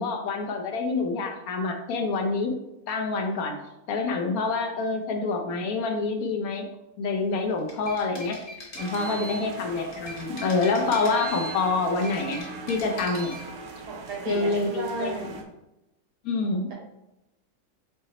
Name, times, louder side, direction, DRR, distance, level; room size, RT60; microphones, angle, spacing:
voice 1, 0.0-2.5 2.9-3.5 3.9-6.7 7.0-8.4 8.7-13.3 14.3-15.1 16.2-16.7, left 3 dB, 65° left, 4 dB, 1.1 m, -27 dB
sound 1, 7.5-9.5 9.9-11.6 11.9-13.5, equal, 35° left, 1.2 m, -40 dB
sound 2, 8.8-15.4, right 4 dB, 75° right, 1.2 m, -40 dB
voice 2, 13.9-15.4, right 3 dB, 90° right, -1 dB, 1.8 m, -34 dB
5.7 x 2.1 x 4.1 m, 0.92 s
omnidirectional pair, 1.8 m